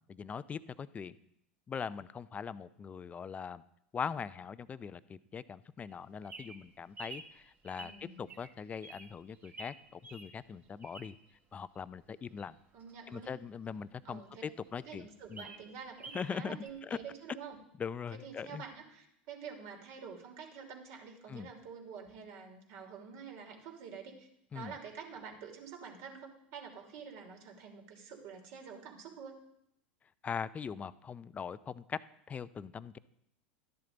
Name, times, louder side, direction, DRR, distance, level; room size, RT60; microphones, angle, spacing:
voice 1, 0.1-1.2 1.7-3.6 3.9-7.9 8.2-11.1 11.5-12.5 13.1-15.5 16.1-17.0 17.8-18.6 21.3-21.5 24.5-24.8 30.2-32.0 32.3-33.0, left 6 dB, 25° left, 16 dB, 0.5 m, -41 dB
Bird vocalization bird call bird song, 5.9-11.4 11.8-13.9 14.3-14.4 14.7-14.8 15.1-16.3 16.6-16.7, right 3 dB, 30° right, 2.0 m, -50 dB
voice 2, 7.8-8.3 12.7-13.3 14.0-14.4 14.8-17.6 18.2-24.3 24.5-29.4, right 6 dB, 55° right, 3 dB, 2.9 m, -48 dB
13.0 x 10.5 x 4.0 m, 0.76 s
hypercardioid pair, 95°, 6 cm